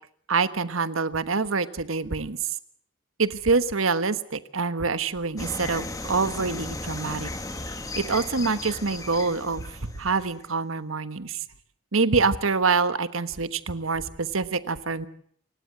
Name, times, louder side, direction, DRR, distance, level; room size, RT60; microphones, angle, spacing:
voice 1, 0.3-2.4 3.2-7.3 8.0-11.4 11.9-15.1, right 4 dB, 85° right, 13 dB, 1.3 m, -26 dB
sound 1, 5.4-10.5, left 2 dB, 15° left, 1.9 m, -36 dB
28.0 x 16.5 x 7.7 m, 0.64 s
head